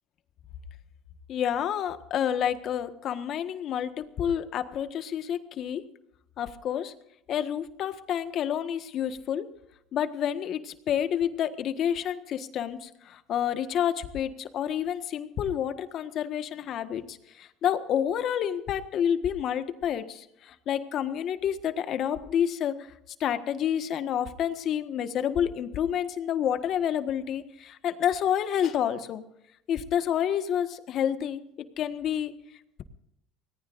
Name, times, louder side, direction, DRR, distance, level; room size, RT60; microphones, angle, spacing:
voice 1, 1.3-5.8 6.4-6.9 7.3-9.5 9.9-22.9 23.2-29.2 29.7-32.3, left 9 dB, 50° left, 9 dB, 1.5 m, -29 dB
25.0 x 18.5 x 2.6 m, 0.78 s
supercardioid pair, 105°, 0 cm